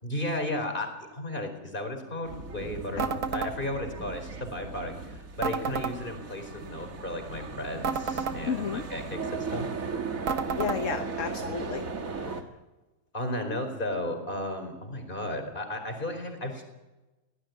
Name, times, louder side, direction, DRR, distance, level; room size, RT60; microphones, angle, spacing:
voice 1, 0.0-9.7 13.1-16.6, left 1 dB, 35° left, 5 dB, 4.8 m, -34 dB
sound 1, 2.2-12.4, right 4 dB, 65° right, 2.2 m, -37 dB
sound 2, 3.0-3.5 5.4-6.0 7.8-8.4 10.3-10.8, right 5 dB, 85° right, 2.0 m, -30 dB
voice 2, 8.5-8.9 10.1-10.2 10.5-12.5, left 7 dB, 60° left, 7 dB, 1.4 m, -33 dB
22.5 x 18.0 x 9.5 m, 1.1 s
omnidirectional pair, 1.6 m